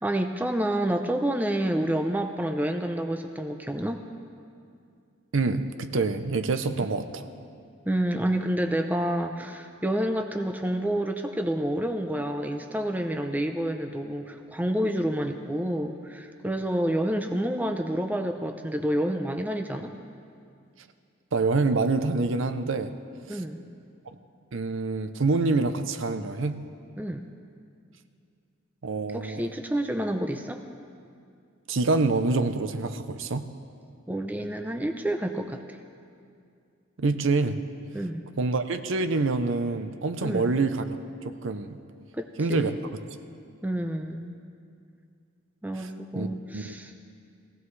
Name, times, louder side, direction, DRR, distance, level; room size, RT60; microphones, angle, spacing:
voice 1, 0.0-4.0 7.9-19.9 23.3-23.6 27.0-27.2 29.1-30.6 34.1-35.8 37.9-38.2 40.2-40.5 42.1-42.9 43.6-44.4 45.6-46.9, right 1 dB, 10° right, 6 dB, 0.5 m, -29 dB
voice 2, 5.3-7.2 21.3-23.0 23.3-23.4 24.5-26.6 28.8-29.4 31.7-33.5 37.0-37.6 38.4-41.8 42.4-42.7 45.8-46.3 46.5-46.8, right 3 dB, 65° right, 9 dB, 0.6 m, -26 dB
19.5 x 16.0 x 3.2 m, 2.4 s
head